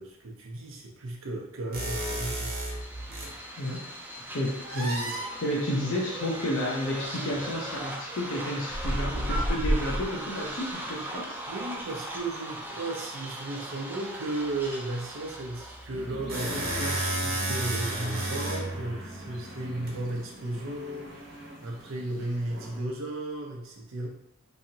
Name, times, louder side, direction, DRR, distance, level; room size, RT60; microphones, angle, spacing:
voice 1, 0.0-2.5 11.5-21.1 21.6-24.1, right 2 dB, 90° right, 0 dB, 0.7 m, -35 dB
sound 1, 1.7-3.4 4.6-5.3 7.3-7.4 8.7-10.3 15.8-19.9, right 1 dB, 50° right, 0.8 m, -31 dB
sound 2, 2.5-16.0, right 1 dB, 10° right, 0.4 m, -39 dB
voice 2, 4.3-11.4, equal, 70° left, -4 dB, 0.6 m, -31 dB
sound 3, 15.9-22.8, equal, 70° right, 1.2 m, -43 dB
3.1 x 2.7 x 2.7 m, 0.88 s
head